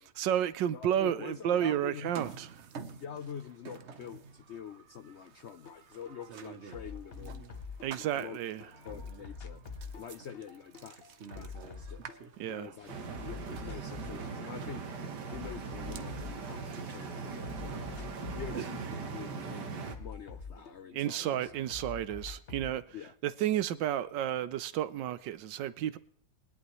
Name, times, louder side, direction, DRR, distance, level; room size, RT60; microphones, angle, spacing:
voice 1, 0.1-2.5 7.8-8.7 12.4-12.7 20.9-22.8 23.2-26.0, right 11 dB, 85° right, 1.4 m, -31 dB
voice 2, 0.7-2.3 3.0-7.5 8.0-8.4 8.8-9.6 9.9-12.1 12.5-12.9 13.2-14.8 15.3-18.0 18.4-21.5 22.0-22.1 22.9-23.1, left 8 dB, 80° left, 0.6 m, -46 dB
sound 1, 2.0-19.3, right 6 dB, 50° right, 0.9 m, -50 dB
sound 2, 5.7-5.8 6.1-8.3 8.6-12.6 12.9-14.4 14.6-16.9 17.2-21.2 21.5-22.8, left 5 dB, 40° left, 1.0 m, -46 dB
sound 3, 12.9-20.0, right 5 dB, 70° right, 1.9 m, -40 dB
20.5 x 11.0 x 3.1 m
omnidirectional pair, 1.9 m